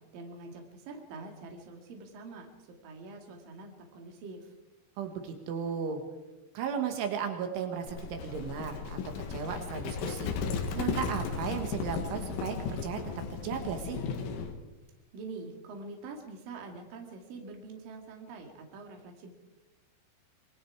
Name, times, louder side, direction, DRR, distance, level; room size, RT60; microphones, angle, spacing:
voice 1, 0.1-2.5 2.8-4.5 15.1-19.3, right 3 dB, 50° right, 2 dB, 3.7 m, -45 dB
voice 2, 5.0-6.0 6.6-9.0 9.3-10.3 10.8-13.0 13.3-14.0, right 7 dB, 75° right, 5 dB, 4.1 m, -35 dB
Livestock farm animals working animals, 7.9-14.5, left 5 dB, 80° left, 4.4 m, -35 dB
27.0 x 20.5 x 4.8 m, 1.1 s
omnidirectional pair, 5.6 m